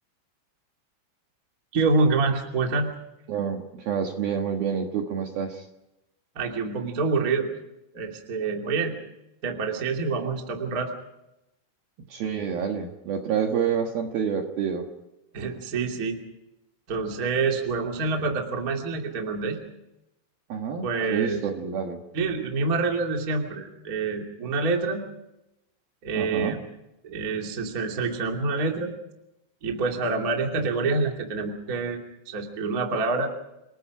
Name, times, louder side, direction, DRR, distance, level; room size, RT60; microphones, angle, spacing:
voice 1, 1.7-2.9 6.3-7.5 7.9-8.9 9.4-10.9 15.3-16.2 16.9-19.6 20.8-21.4 22.1-25.0 26.0-26.6 27.0-28.9 29.6-32.0 32.2-33.3, right 4 dB, 30° right, 2 dB, 1.7 m, -26 dB
voice 2, 3.3-5.7 12.1-14.9 20.5-22.0 26.1-26.6 30.5-30.6, right 7 dB, 60° right, 3 dB, 2.8 m, -28 dB
30.0 x 20.0 x 5.0 m, 0.90 s
omnidirectional pair, 5.9 m